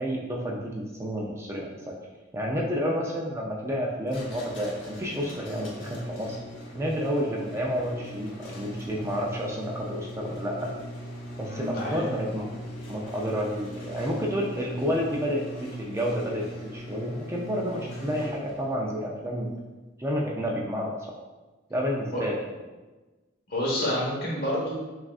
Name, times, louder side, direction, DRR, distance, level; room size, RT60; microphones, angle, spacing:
voice 1, 0.0-1.9 2.3-6.4 6.7-10.7 11.4-12.5 12.9-19.5 20.0-21.0 21.7-22.3, equal, 15° right, -2 dB, 0.4 m, -30 dB
sound 1, 4.1-18.8, equal, 75° left, 1.2 m, -40 dB
voice 2, 11.5-12.0 22.1-22.2 23.5-24.7, left 1 dB, 55° left, -4 dB, 1.1 m, -28 dB
5.9 x 2.4 x 2.4 m, 1.2 s
head